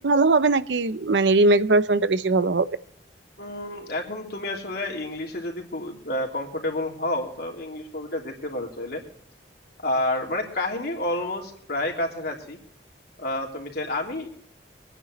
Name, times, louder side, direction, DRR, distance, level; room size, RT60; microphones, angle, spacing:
voice 1, 0.0-2.7, right 3 dB, 85° right, 0.7 m, -20 dB
voice 2, 3.4-9.0 9.8-12.6 13.2-14.3, left 1 dB, 60° left, 3.2 m, -29 dB
26.0 x 9.9 x 3.1 m
head